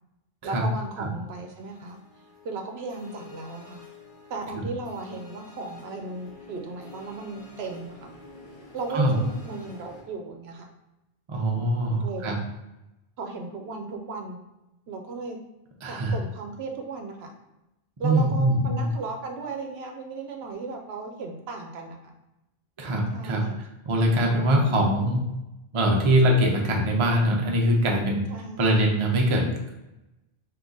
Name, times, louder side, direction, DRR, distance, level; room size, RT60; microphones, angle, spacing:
voice 1, 0.4-2.0 2.4-3.8 4.3-8.1 8.7-10.7 11.9-12.3 13.2-14.4 14.9-15.4 15.9-17.3 18.0-22.1 23.1-23.6 24.3-24.9 25.9-26.1 28.3-28.7, right 3 dB, 75° right, 4 dB, 0.8 m, -36 dB
sound 1, 1.4-10.0, left 3 dB, 50° left, 1.2 m, -49 dB
voice 2, 11.3-12.4 15.8-16.1 18.0-18.9 22.8-23.4 23.9-25.3 25.7-28.2 28.6-29.7, right 1 dB, 35° right, 0 dB, 0.6 m, -22 dB
3.6 x 2.8 x 3.9 m, 0.95 s
omnidirectional pair, 1.1 m